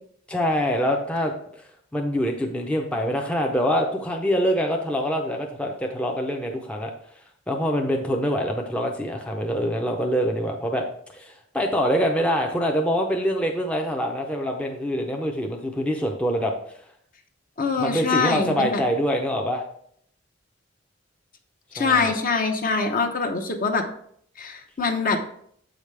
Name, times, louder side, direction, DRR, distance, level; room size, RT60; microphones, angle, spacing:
voice 1, 0.3-6.9 7.5-10.8 11.1-16.5 17.8-19.6 21.8-22.1, equal, 5° left, 1 dB, 0.5 m, -25 dB
voice 2, 17.6-18.8 21.7-23.9 24.4-25.2, left 4 dB, 45° left, 4 dB, 0.8 m, -24 dB
7.4 x 5.0 x 3.2 m, 0.65 s
head